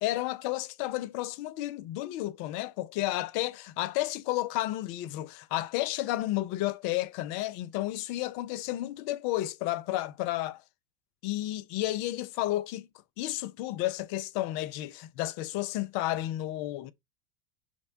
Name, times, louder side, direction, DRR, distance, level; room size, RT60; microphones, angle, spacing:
voice 1, 0.0-10.6 11.2-12.9 13.2-16.9, left 16 dB, 50° left, 0.6 m, -32 dB
5.8 x 2.2 x 2.7 m
hypercardioid pair, 95°, 49 cm